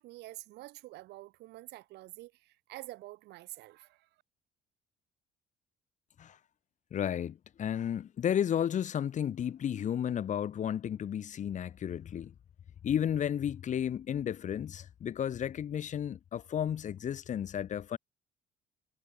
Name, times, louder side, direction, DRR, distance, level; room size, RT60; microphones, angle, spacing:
voice 1, 0.0-4.1, right 18 dB, 80° right, 1.6 m, -48 dB
voice 2, 6.9-12.3 12.8-18.0, left 9 dB, 45° left, 1.4 m, -33 dB
cardioid pair, 110°, 17 cm